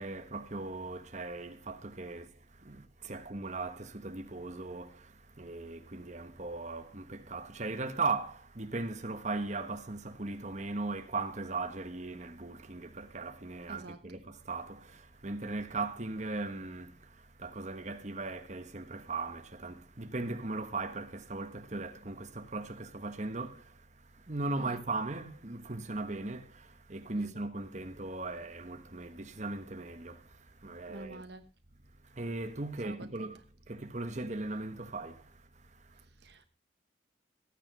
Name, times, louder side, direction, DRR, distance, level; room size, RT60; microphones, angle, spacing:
voice 1, 0.0-31.2 32.0-36.0, right 3 dB, 40° right, 1.3 m, -38 dB
voice 2, 30.9-31.4 32.8-33.3 36.2-36.4, right 2 dB, 60° right, 1.1 m, -47 dB
15.0 x 9.2 x 5.5 m
head